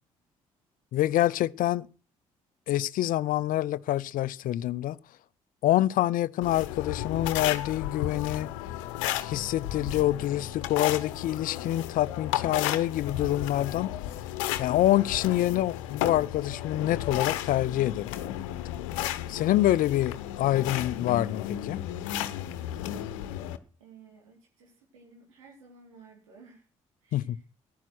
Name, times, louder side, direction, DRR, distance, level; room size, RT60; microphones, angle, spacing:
voice 1, 0.9-1.9 2.7-5.0 5.6-8.5 9.2-13.9 14.6-18.2 19.3-21.8 27.1-27.4, left 14 dB, 55° left, 0.6 m, -26 dB
sound 1, 6.4-23.6, left 12 dB, 75° left, 0.9 m, -33 dB
voice 2, 23.8-26.7 27.0-27.4, right 4 dB, 80° right, 3.7 m, -54 dB
14.5 x 11.5 x 6.1 m
figure-of-eight pair, 45°, 17 cm